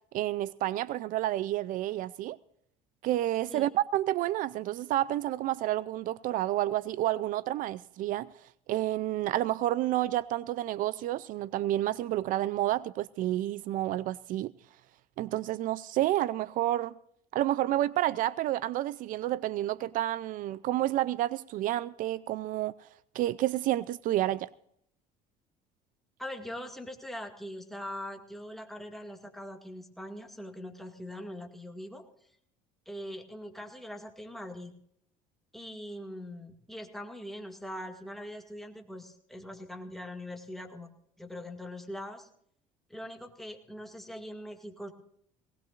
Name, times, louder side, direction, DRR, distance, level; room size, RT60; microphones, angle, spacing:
voice 1, 0.1-2.4 3.0-8.3 8.7-14.5 15.2-16.9 17.3-22.7 23.1-24.5, right 14 dB, 60° right, 0.4 m, -30 dB
voice 2, 26.2-32.1 32.9-34.7 35.5-40.9 41.2-42.3 42.9-44.9, left 1 dB, ahead, 2.1 m, -42 dB
19.5 x 19.0 x 2.5 m
cardioid pair, 110°, 16 cm